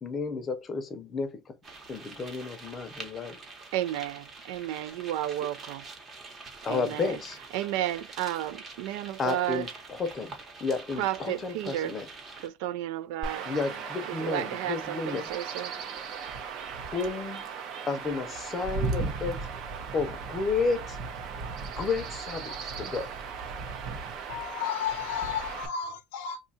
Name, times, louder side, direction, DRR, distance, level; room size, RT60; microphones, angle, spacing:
voice 1, 0.0-1.5 1.9-3.4 6.6-7.4 9.2-10.3 10.6-12.1 13.4-15.3 16.8-17.5 17.9-19.5 19.9-21.0 21.7-23.1, left 4 dB, 30° left, 0.6 m, -32 dB
sound 1, 1.6-12.5, right 3 dB, 30° right, 1.0 m, -46 dB
voice 2, 3.7-5.9 6.7-7.2 7.5-9.6 11.0-11.9 12.4-13.5 14.1-15.7, right 13 dB, 80° right, 0.3 m, -32 dB
Chirp tweet / Wind / Stream, 13.2-25.7, right 5 dB, 50° right, 0.7 m, -36 dB
voice 3, 24.3-26.4, left 8 dB, 90° left, 0.5 m, -33 dB
2.7 x 2.4 x 4.1 m
cardioid pair, 135°, 0 cm